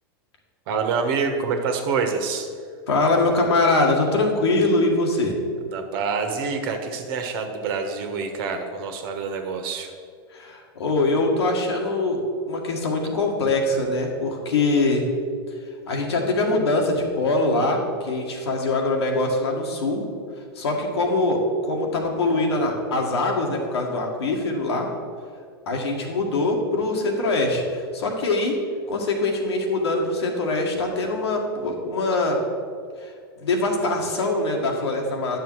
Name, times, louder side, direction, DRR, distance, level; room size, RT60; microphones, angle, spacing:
voice 1, 0.7-2.5 5.7-9.9, right 5 dB, 60° right, 5 dB, 1.4 m, -26 dB
voice 2, 2.9-5.4 10.3-15.1 15.9-20.0 20.6-24.9 25.7-28.6 28.9-32.4 33.0-33.1 33.4-35.4, left 2 dB, 85° left, 1 dB, 1.8 m, -23 dB
10.0 x 6.8 x 4.7 m, 2.2 s
hypercardioid pair, 110°, 13 cm